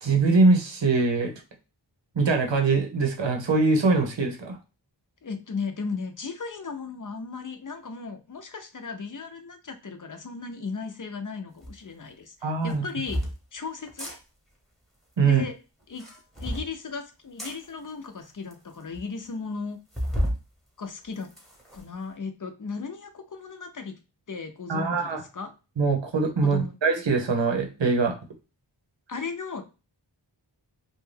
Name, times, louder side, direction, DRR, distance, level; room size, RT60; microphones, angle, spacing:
voice 1, 0.0-1.3 2.1-4.6 12.4-12.8 15.2-15.4 24.7-25.2 25.8-28.1, right 4 dB, 80° right, 3 dB, 0.8 m, -22 dB
voice 2, 5.2-13.2 13.5-14.1 15.2-15.5 15.9-16.1 16.4-19.8 20.8-21.3 21.7-23.9 24.3-25.5 26.4-26.7 29.1-29.6, left 4 dB, 45° left, 6 dB, 0.6 m, -36 dB
sound 1, 11.6-11.7 12.6-13.3 13.9-14.2 15.8-16.7 17.4-17.6 18.2-18.3 18.5-18.6 18.9-19.0 19.9-20.4 20.9-21.8, equal, ahead, 0.9 m, -31 dB
2.5 x 2.2 x 3.2 m, 0.30 s
wide cardioid pair, 45°, 44 cm